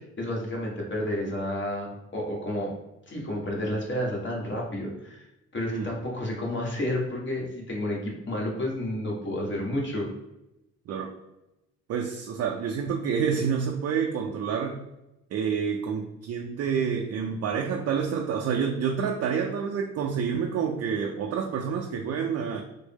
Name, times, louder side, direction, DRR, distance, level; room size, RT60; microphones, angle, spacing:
voice 1, 0.0-2.7 3.1-5.2 5.5-10.1, left 1 dB, 40° left, -2 dB, 1.2 m, -31 dB
voice 2, 11.9-14.8 15.3-22.6, right 6 dB, 55° right, 2 dB, 0.4 m, -28 dB
3.5 x 2.0 x 3.5 m, 0.93 s
cardioid pair, 90°, 30 cm